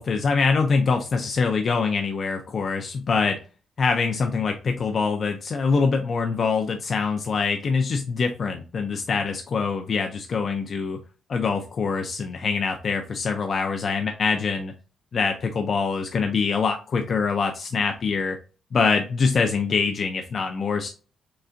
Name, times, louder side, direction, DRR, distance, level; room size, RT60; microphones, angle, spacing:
voice 1, 0.0-3.4 3.8-11.0 11.3-14.7 15.1-18.4 18.7-20.9, left 5 dB, 40° left, 4 dB, 0.4 m, -24 dB
3.8 x 3.2 x 2.4 m, 0.35 s
wide cardioid pair, 170°, 0 cm